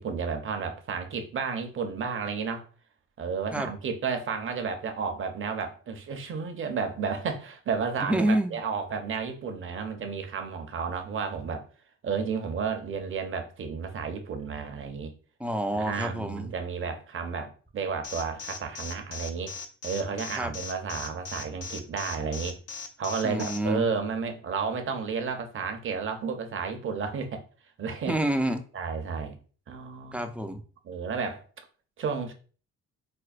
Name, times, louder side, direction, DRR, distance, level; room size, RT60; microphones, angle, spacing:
voice 1, 0.0-2.6 3.2-11.6 12.0-15.1 15.7-19.5 19.8-22.6 23.0-27.4 27.8-28.2 28.7-29.4 29.7-30.3 30.8-31.4 32.0-32.3, right 5 dB, 45° right, 5 dB, 0.7 m, -32 dB
voice 2, 8.0-8.6 15.4-16.5 20.4-20.5 23.2-23.8 28.1-28.6 30.1-30.6, right 1 dB, 5° right, 6 dB, 0.4 m, -28 dB
Alarm, 18.0-23.6, left 5 dB, 55° left, 0.6 m, -38 dB
4.3 x 2.2 x 2.4 m, 0.40 s
cardioid pair, 90°, 30 cm